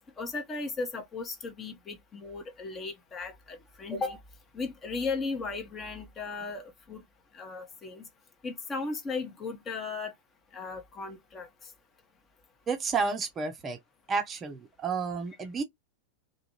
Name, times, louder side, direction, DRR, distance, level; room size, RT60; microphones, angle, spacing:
voice 1, 0.2-4.2 4.5-7.0 7.3-8.1 8.4-10.1 10.5-11.5, left 4 dB, 25° left, 0.9 m, -36 dB
voice 2, 12.7-13.8 14.1-15.6, right 5 dB, 25° right, 0.6 m, -31 dB
2.7 x 2.4 x 2.9 m
figure-of-eight pair, 90°, 0 cm